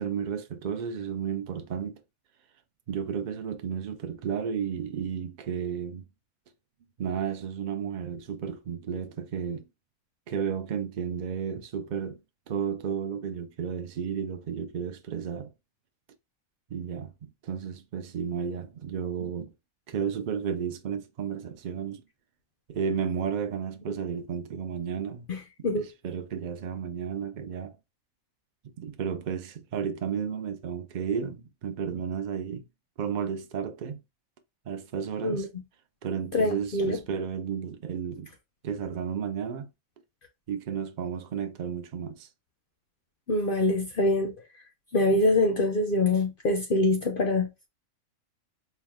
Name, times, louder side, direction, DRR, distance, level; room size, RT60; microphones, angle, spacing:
voice 1, 0.0-2.0 2.9-6.0 7.0-9.6 10.3-12.2 12.5-15.5 16.7-17.1 17.4-19.5 19.9-22.0 22.7-25.3 25.7-27.7 28.8-32.6 33.0-34.0 34.7-35.5 36.0-38.3 38.6-39.7 40.5-42.3, right 7 dB, 85° right, 0.4 m, -32 dB
voice 2, 25.3-25.9 35.2-35.5 36.3-37.0 43.3-44.3 44.9-47.5, left 2 dB, 60° left, 0.6 m, -24 dB
4.4 x 2.1 x 3.5 m
omnidirectional pair, 1.5 m